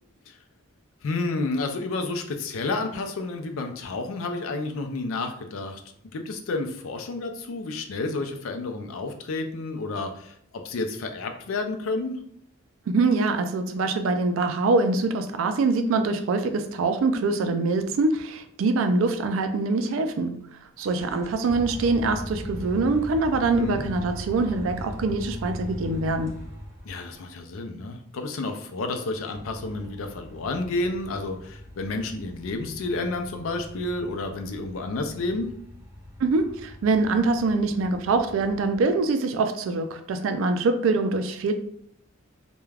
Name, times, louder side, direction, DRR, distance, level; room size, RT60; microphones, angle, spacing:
voice 1, 1.0-5.8 6.1-10.3 10.6-12.2 23.5-23.8 26.8-35.5, left 3 dB, 75° left, 5 dB, 0.4 m, -30 dB
voice 2, 12.9-20.4 20.8-26.3 36.2-41.5, right 3 dB, 75° right, 7 dB, 0.3 m, -24 dB
sound 1, 20.8-27.2 28.9-39.0, equal, 15° right, 0.7 m, -40 dB
2.3 x 2.2 x 3.2 m, 0.68 s
head